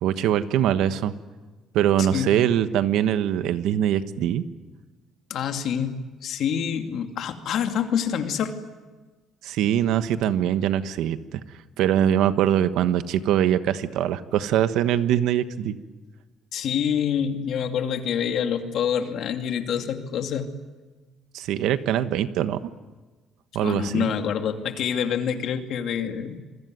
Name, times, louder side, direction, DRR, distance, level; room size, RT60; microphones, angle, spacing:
voice 1, 0.0-1.1 1.7-4.4 9.4-11.2 11.8-15.8 21.3-22.6 23.5-24.1, right 10 dB, 85° right, 11 dB, 1.3 m, -22 dB
voice 2, 2.0-2.4 5.3-8.5 16.5-20.5 23.6-26.4, left 8 dB, 65° left, 6 dB, 2.5 m, -26 dB
27.5 x 21.5 x 9.5 m, 1.3 s
cardioid pair, 140°, 0 cm